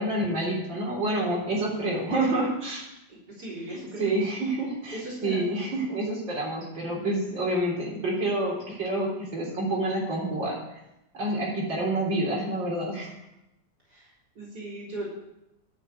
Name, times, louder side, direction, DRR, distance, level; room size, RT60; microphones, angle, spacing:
voice 1, 0.0-2.8 3.7-10.6 11.2-13.1, right 1 dB, 85° right, -3 dB, 4.3 m, -28 dB
voice 2, 1.6-2.1 3.1-4.3 4.9-5.5 13.9-15.1, right 1 dB, 60° right, -5 dB, 4.6 m, -38 dB
11.5 x 8.4 x 8.3 m, 0.89 s
omnidirectional pair, 2.0 m